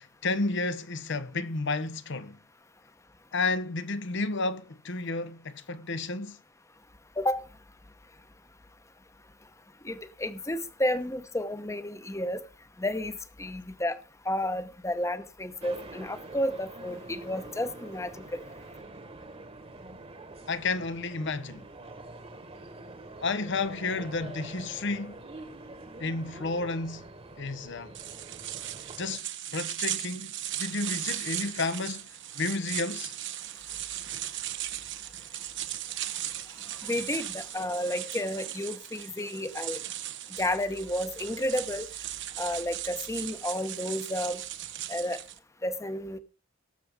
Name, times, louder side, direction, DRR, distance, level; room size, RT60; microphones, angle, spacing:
voice 1, 0.0-2.4 3.3-6.4 20.5-21.7 23.2-25.2 26.0-27.1 27.4-27.9 29.0-32.1 32.3-33.1, left 3 dB, 65° left, 1.0 m, -31 dB
voice 2, 9.8-12.4 12.8-14.0 14.2-18.4 36.8-39.8 40.3-41.9 42.4-44.4 44.9-45.2 45.6-46.2, left 1 dB, 15° left, 0.9 m, -31 dB
sound 1, 15.6-29.2, right 2 dB, 30° right, 1.5 m, -45 dB
sound 2, 27.9-45.4, right 12 dB, 65° right, 1.0 m, -37 dB
19.0 x 6.9 x 3.6 m
head